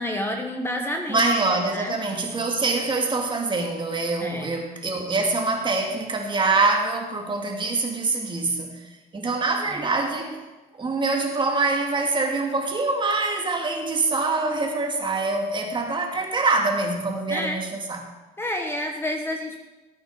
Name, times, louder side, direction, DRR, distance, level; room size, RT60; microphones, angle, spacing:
voice 1, 0.0-1.3 1.7-2.0 4.2-4.5 17.3-17.6 18.4-19.6, left 1 dB, 15° left, 3 dB, 1.4 m, -29 dB
voice 2, 1.1-10.4 10.8-18.0, right 3 dB, 30° right, 2 dB, 2.6 m, -25 dB
18.5 x 8.6 x 5.1 m, 1.1 s
cardioid pair, 110°, 17 cm